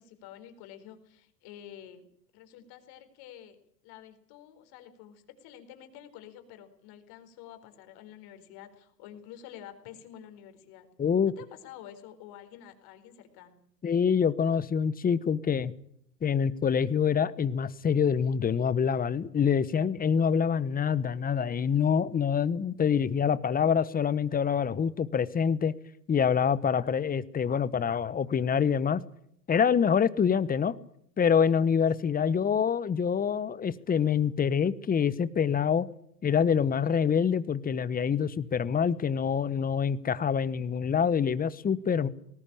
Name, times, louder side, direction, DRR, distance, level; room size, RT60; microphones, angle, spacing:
voice 1, 0.0-2.1 2.3-3.6 3.8-10.9 11.4-13.6 32.0-32.5, left 10 dB, 50° left, 7 dB, 4.5 m, -49 dB
voice 2, 11.0-11.3 13.8-15.7 16.2-25.7 26.1-29.0 29.5-30.7 31.2-35.9 36.2-42.1, left 7 dB, 20° left, 16 dB, 1.2 m, -26 dB
20.0 x 17.5 x 8.8 m, 0.70 s
hypercardioid pair, 100°, 49 cm